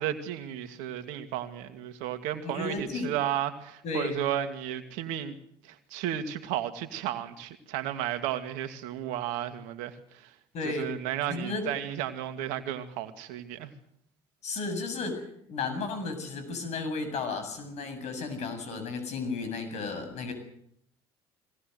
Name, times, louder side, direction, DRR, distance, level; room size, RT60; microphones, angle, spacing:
voice 1, 0.0-5.4 5.6-10.3 10.6-13.7, right 11 dB, 75° right, 2.2 m, -33 dB
voice 2, 2.4-3.1 3.8-4.2 10.5-10.9 11.3-11.7 14.4-15.2 15.5-20.3, left 3 dB, 60° left, 7.6 m, -33 dB
22.5 x 18.5 x 8.1 m
hypercardioid pair, 65°, 13 cm